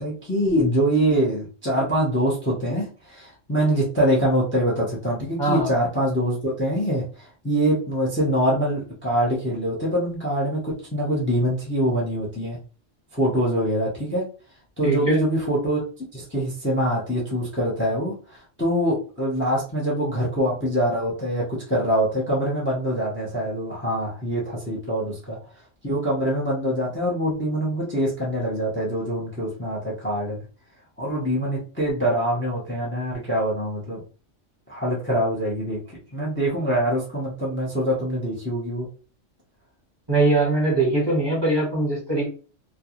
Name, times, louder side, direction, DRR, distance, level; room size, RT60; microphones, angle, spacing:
voice 1, 0.0-12.6 13.1-14.2 14.8-15.8 16.1-25.4 25.8-30.4 31.0-34.0 34.7-35.8 36.1-38.9, equal, 10° left, -4 dB, 0.6 m, -24 dB
voice 2, 5.4-5.7 14.8-15.2 40.1-42.3, right 2 dB, 20° right, -4 dB, 0.9 m, -21 dB
2.3 x 2.2 x 2.9 m, 0.37 s
omnidirectional pair, 1.3 m